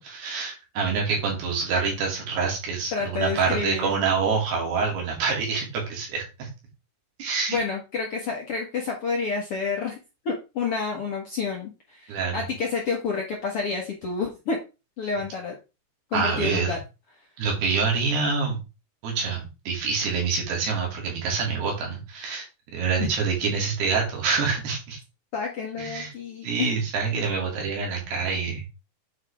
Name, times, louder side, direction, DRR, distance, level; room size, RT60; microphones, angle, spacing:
voice 1, 0.0-6.5 7.2-7.6 12.1-12.4 16.1-16.7 17.4-18.6 19.0-22.5 22.7-25.0 25.8-26.1 26.4-28.7, right 5 dB, 90° right, -1 dB, 4.9 m, -26 dB
voice 2, 2.9-3.9 7.5-10.0 10.2-14.6 15.0-15.5 16.1-16.8 25.3-26.7, left 5 dB, 60° left, -1 dB, 1.5 m, -29 dB
9.1 x 5.1 x 3.5 m, 0.28 s
omnidirectional pair, 4.5 m